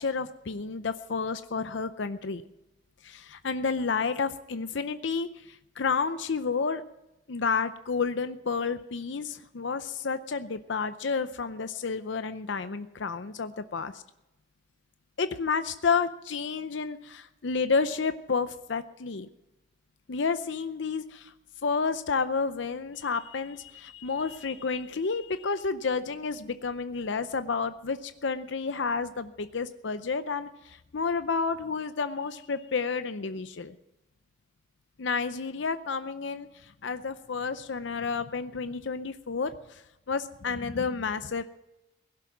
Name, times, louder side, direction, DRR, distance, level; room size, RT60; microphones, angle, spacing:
voice 1, 0.0-2.4 3.0-6.8 7.3-14.0 15.2-19.3 20.1-21.3 21.6-33.7 35.0-39.8 40.1-41.4, left 5 dB, 70° left, 11 dB, 0.6 m, -30 dB
17.0 x 11.5 x 6.1 m, 0.91 s
head